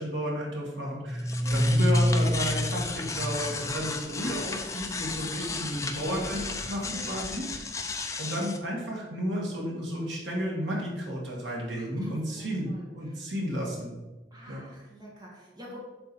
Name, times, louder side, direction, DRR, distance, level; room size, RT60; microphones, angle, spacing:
voice 1, 0.0-7.4 8.2-13.9 14.5-14.6, equal, 70° right, -2 dB, 2.2 m, -32 dB
sound 1, 1.0-8.6, left 1 dB, 15° left, 0.6 m, -29 dB
voice 2, 6.9-7.2 11.7-13.2 14.3-15.8, equal, 20° right, -4 dB, 1.8 m, -48 dB
7.8 x 6.3 x 4.4 m, 1.2 s
head